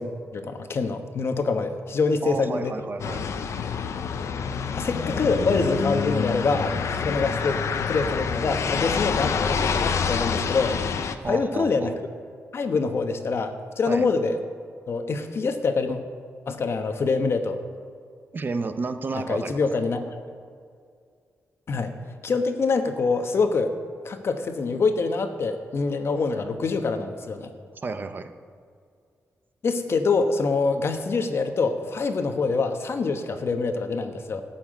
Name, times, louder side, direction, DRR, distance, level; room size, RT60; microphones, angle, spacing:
voice 1, 0.0-2.7 4.8-10.8 11.3-11.9 12.5-14.4 14.9-16.0 16.5-17.6 19.1-20.1 21.7-21.9 22.2-23.7 24.0-27.5 29.6-34.4, left 4 dB, 55° left, 7 dB, 1.2 m, -25 dB
voice 2, 2.2-3.3 11.2-11.9 13.8-14.1 18.3-19.7 27.7-28.3, right 3 dB, 40° right, 9 dB, 0.8 m, -31 dB
sound 1, 3.0-11.1, left 6 dB, 70° left, 0.8 m, -27 dB
13.0 x 5.9 x 8.9 m, 2.2 s
cardioid pair, 95°, 5 cm